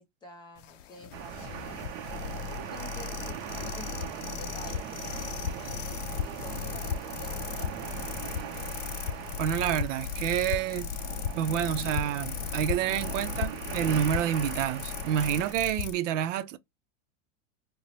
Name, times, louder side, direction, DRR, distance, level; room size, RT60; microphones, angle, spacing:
voice 1, 0.0-1.9 2.5-6.0 6.4-7.7, left 1 dB, 10° left, 0.4 m, -49 dB
sound 1, 0.6-15.9, left 9 dB, 85° left, 0.5 m, -36 dB
sound 2, 1.1-15.5, right 9 dB, 35° right, 0.6 m, -40 dB
voice 2, 9.4-10.9 11.4-16.6, right 10 dB, 75° right, 0.5 m, -28 dB
2.9 x 2.0 x 3.8 m
supercardioid pair, 135°, 37 cm